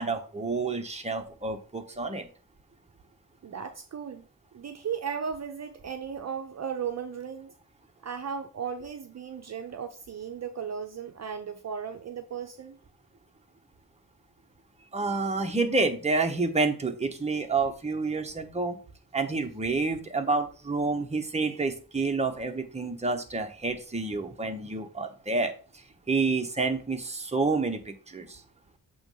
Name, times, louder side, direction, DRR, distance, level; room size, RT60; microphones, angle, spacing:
voice 1, 0.0-2.2 14.9-18.8 19.1-25.5 26.1-28.4, right 3 dB, 20° right, 0.9 m, -29 dB
voice 2, 3.4-4.2 4.5-7.5 8.0-12.8, right 7 dB, 50° right, 0.6 m, -36 dB
7.0 x 3.1 x 5.5 m
wide cardioid pair, 110°, 35 cm